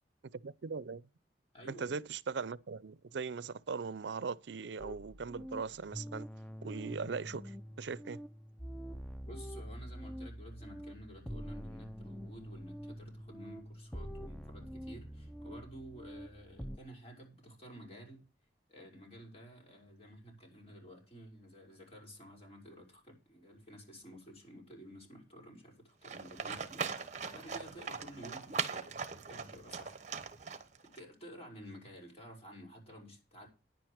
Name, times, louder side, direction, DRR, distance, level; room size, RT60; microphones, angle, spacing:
voice 1, 0.4-1.0 1.7-6.3 6.6-8.2, right 5 dB, 75° right, 0.5 m, -40 dB
voice 2, 1.5-2.0 9.2-18.2 18.7-27.0 27.3-30.1 30.4-30.5 30.9-33.5, equal, 35° left, 5.7 m, -52 dB
sound 1, 4.8-16.8, equal, 5° left, 0.5 m, -46 dB
Livestock farm animals working animals, 26.0-31.0, right 5 dB, 40° right, 1.2 m, -40 dB
10.0 x 9.0 x 5.0 m
head